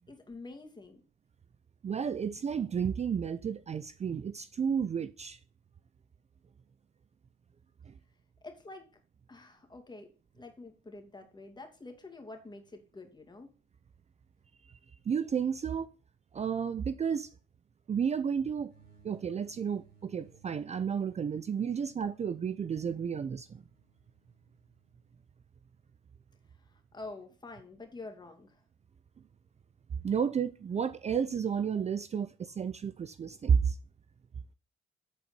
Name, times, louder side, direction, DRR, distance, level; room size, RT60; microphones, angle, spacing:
voice 1, 0.1-1.0 8.4-8.9 9.3-13.5 26.5-28.6, left 3 dB, 20° left, 2.3 m, -47 dB
voice 2, 1.8-5.4 7.9-8.0 14.6-14.7 15.1-15.9 16.3-17.3 17.9-18.7 19.0-23.6 30.0-33.8, right 7 dB, 35° right, 0.5 m, -32 dB
sound 1, 18.7-25.3, right 6 dB, 55° right, 4.8 m, -63 dB
8.2 x 4.3 x 6.8 m
cardioid pair, 90°, 20 cm